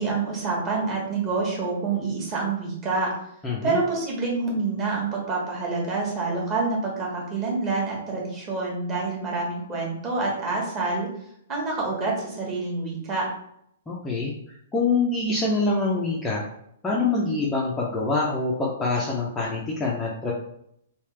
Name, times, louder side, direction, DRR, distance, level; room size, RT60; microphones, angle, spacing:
voice 1, 0.0-3.1 3.6-11.1 11.5-13.3, right 3 dB, 20° right, -3 dB, 1.2 m, -27 dB
voice 2, 3.4-3.8 13.9-16.4 16.8-20.3, left 3 dB, 10° left, -5 dB, 0.5 m, -25 dB
3.3 x 2.8 x 3.2 m, 0.72 s
hypercardioid pair, 160°, 0 cm